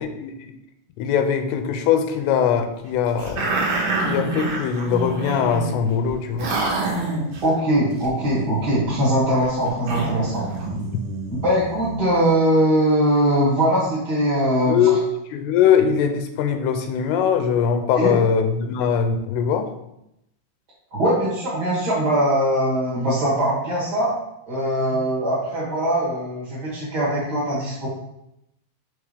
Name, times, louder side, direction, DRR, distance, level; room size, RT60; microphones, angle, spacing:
voice 1, 0.0-0.5 1.0-3.5 4.0-6.5 14.5-15.0 15.3-19.7 24.9-25.1, left 7 dB, 90° left, 7 dB, 2.7 m, -21 dB
sound 1, 3.2-5.7 6.1-6.2 6.4-7.5 8.0-12.2, right 2 dB, 70° right, 1.6 m, -27 dB
voice 2, 7.4-10.5 11.4-14.8 18.0-18.1 20.9-24.1 24.5-27.9, right 1 dB, 40° right, -8 dB, 1.5 m, -21 dB
6.1 x 3.6 x 5.0 m, 0.82 s
omnidirectional pair, 4.6 m